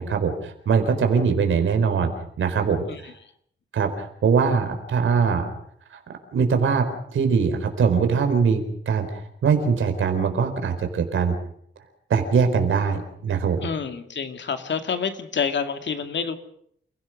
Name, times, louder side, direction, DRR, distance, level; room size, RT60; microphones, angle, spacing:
voice 1, 0.0-2.1 2.4-2.8 3.7-5.5 6.3-6.9 7.1-9.1 9.4-11.3 12.1-13.6, right 6 dB, 90° right, 6 dB, 4.3 m, -22 dB
voice 2, 2.9-3.3 13.6-16.4, left 6 dB, 65° left, 7 dB, 2.4 m, -28 dB
29.0 x 17.0 x 6.5 m, 0.68 s
wide cardioid pair, 120°, 20 cm